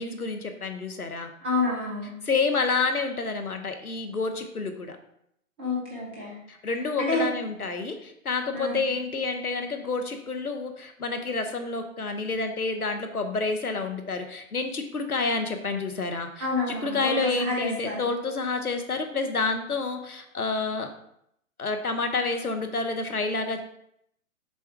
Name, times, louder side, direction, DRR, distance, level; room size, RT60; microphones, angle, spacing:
voice 1, 0.0-1.3 2.2-5.0 6.5-20.9 21.6-23.6, left 3 dB, 90° left, 7 dB, 1.0 m, -29 dB
voice 2, 1.4-2.1 5.6-6.3 7.0-7.3 8.5-8.8 16.4-18.0, left 3 dB, 10° right, -5 dB, 0.5 m, -28 dB
6.9 x 3.6 x 4.5 m, 0.73 s
figure-of-eight pair, 130°, 43 cm